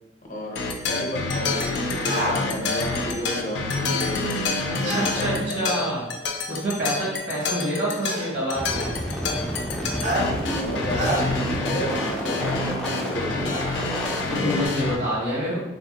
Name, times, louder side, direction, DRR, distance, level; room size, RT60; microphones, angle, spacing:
voice 1, 0.3-4.5 4.8-5.8 7.4-7.6 10.1-13.9, equal, 45° left, -1 dB, 0.6 m, -32 dB
sound 1, 0.6-15.0, left 3 dB, 90° left, 0.4 m, -28 dB
sound 2, 2.0-2.4 4.8-5.1 6.4-6.5 8.0-8.3 10.0-10.3 10.9-11.2, right 1 dB, 40° right, 0.6 m, -26 dB
voice 2, 4.8-6.0 6.5-8.8 14.3-15.6, equal, 70° right, -6 dB, 1.3 m, -27 dB
sound 3, 8.5-14.7, equal, 5° left, 0.4 m, -30 dB
3.3 x 2.1 x 2.8 m, 1.0 s
head